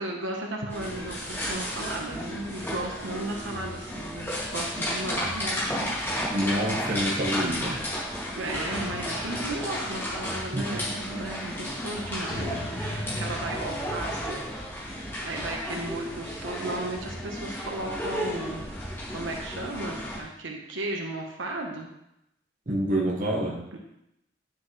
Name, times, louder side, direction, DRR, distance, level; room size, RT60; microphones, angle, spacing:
voice 1, 0.0-6.0 8.4-14.4 15.2-18.7 19.1-21.9 23.7-23.8, right 1 dB, 90° right, 0 dB, 1.2 m, -35 dB
sound 1, 0.7-20.2, equal, 10° left, 2.4 m, -33 dB
sound 2, 4.2-17.4, left 1 dB, 30° left, 3.5 m, -42 dB
voice 2, 6.3-7.8 10.5-10.8 22.7-23.6, right 1 dB, 45° right, -3 dB, 1.5 m, -27 dB
9.5 x 7.0 x 3.3 m, 0.83 s
head